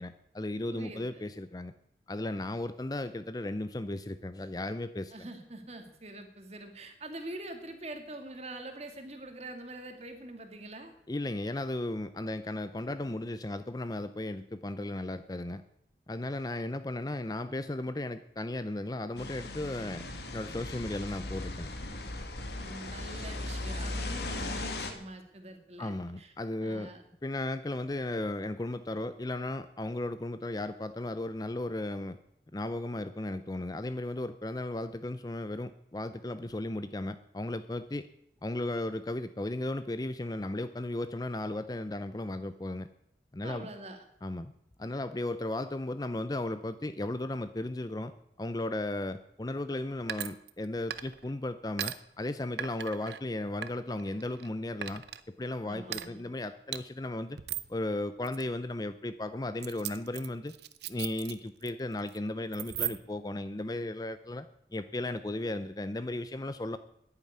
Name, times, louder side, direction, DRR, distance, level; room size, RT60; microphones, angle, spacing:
voice 1, 0.0-1.7 2.1-5.3 11.1-15.6 16.1-20.0 20.3-21.7 25.8-26.9 27.2-32.2 32.5-38.1 38.4-42.9 43.3-43.7 44.2-44.5 44.8-48.1 48.4-57.4 57.7-60.5 60.9-64.5 64.7-66.8, left 1 dB, 20° left, 12 dB, 0.5 m, -35 dB
voice 2, 0.7-1.3 5.1-10.9 22.5-26.3 26.6-27.0 43.4-44.0 55.6-56.3, right 1 dB, 35° right, 6 dB, 2.1 m, -44 dB
sound 1, 19.2-24.9, left 2 dB, 70° left, 1.9 m, -37 dB
sound 2, 50.1-50.6 50.9-51.3 51.8-51.9 52.6-53.2 53.6-54.5 54.8-55.2 55.9-56.1 56.7-56.8 57.4-57.7 58.2-58.4 59.6-61.7 62.0-62.2 62.5-63.2, right 11 dB, 70° right, 0.8 m, -38 dB
11.0 x 9.8 x 9.5 m, 0.75 s
head